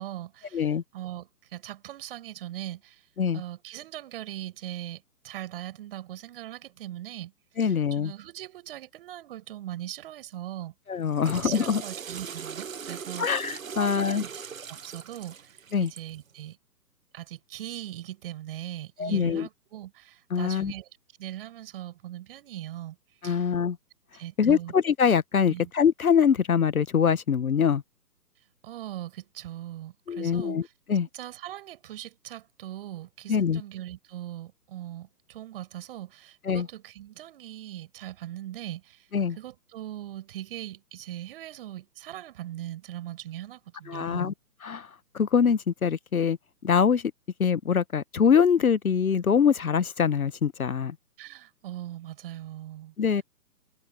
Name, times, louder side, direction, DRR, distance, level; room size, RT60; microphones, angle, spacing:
voice 1, 0.0-3.1 3.3-7.3 7.6-10.7 11.2-13.5 13.7-16.6 17.1-20.9 21.2-23.0 23.2-23.5 24.1-24.7 25.5-25.7 28.6-30.7 31.1-39.1 39.4-44.3 51.2-52.9, right 13 dB, 35° right, 7.7 m, -40 dB
voice 2, 7.6-8.1 10.9-11.8 13.2-14.2 15.7-15.9 19.0-19.5 20.3-20.7 23.2-23.8 24.4-27.8 30.1-30.6 30.9-31.1 33.3-33.6 36.4-36.7 39.1-39.4 43.9-44.3 44.6-44.9 45.1-46.4 46.6-47.1 47.4-51.0 53.0-53.2, left 7 dB, 60° left, 1.1 m, -24 dB
Water / Toilet flush, 11.0-16.2, right 6 dB, 55° right, 1.7 m, -39 dB
figure-of-eight pair, 130°, 49 cm